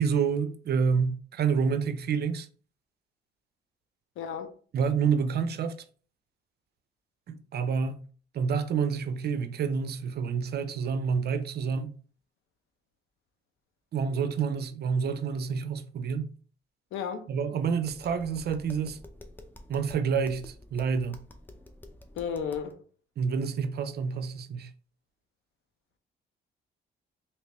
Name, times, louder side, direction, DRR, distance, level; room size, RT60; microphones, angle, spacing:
voice 1, 0.0-2.5 4.7-5.8 7.3-8.0 8.3-11.9 13.9-16.3 17.3-19.0 19.7-21.2 23.2-24.7, right 6 dB, 55° right, 0.5 m, -28 dB
voice 2, 4.2-4.5 16.9-17.3 22.2-22.8, left 7 dB, 85° left, 0.6 m, -33 dB
Tap, 17.8-22.7, left 1 dB, 10° left, 0.5 m, -49 dB
3.3 x 2.9 x 2.9 m
cardioid pair, 90°, 20 cm